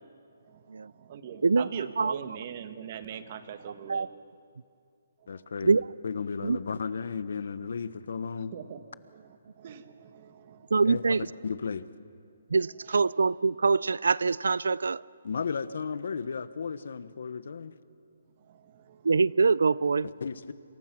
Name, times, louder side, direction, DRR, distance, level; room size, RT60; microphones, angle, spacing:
voice 1, 0.5-4.1 5.3-5.4 8.5-8.8 9.1-10.7 12.8-13.0 18.4-19.1, right 8 dB, 40° right, 9 dB, 1.6 m, -42 dB
voice 2, 1.4-2.2 3.9-4.1 5.6-5.8 6.4-6.6 10.7-11.2 12.5-15.0 19.0-20.1, right 4 dB, 90° right, 21 dB, 0.5 m, -24 dB
voice 3, 5.3-8.5 10.8-11.9 15.2-17.7 20.2-20.5, left 5 dB, 65° left, 14 dB, 1.2 m, -34 dB
28.0 x 27.0 x 6.1 m, 2.5 s
hypercardioid pair, 165°, 0 cm